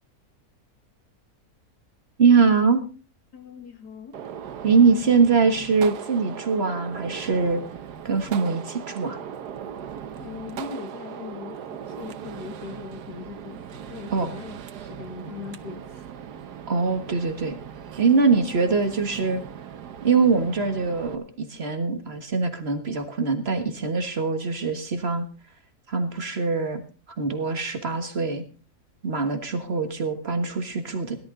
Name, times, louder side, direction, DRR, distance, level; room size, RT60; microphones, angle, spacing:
voice 1, 2.2-2.8 4.6-7.6 8.0-9.2 14.1-14.3 16.7-17.5 18.0-19.4 20.0-25.2 25.9-26.8 27.2-28.4 29.0-31.2, right 5 dB, 40° right, 7 dB, 1.7 m, -22 dB
voice 2, 3.3-4.2 10.1-16.1, left 5 dB, 90° left, 7 dB, 2.4 m, -40 dB
Gunshot gunfire, 4.1-21.1, right 8 dB, 90° right, 1.5 m, -39 dB
17.5 x 11.5 x 3.8 m, 0.37 s
omnidirectional pair, 1.7 m